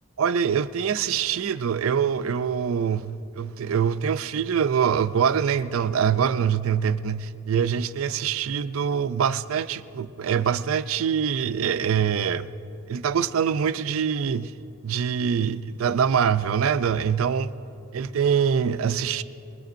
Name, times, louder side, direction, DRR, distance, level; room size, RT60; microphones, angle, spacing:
voice 1, 0.2-12.5 12.9-14.5 14.8-17.5 17.9-19.2, right 7 dB, 70° right, 0.4 m, -24 dB
22.5 x 20.5 x 2.6 m
head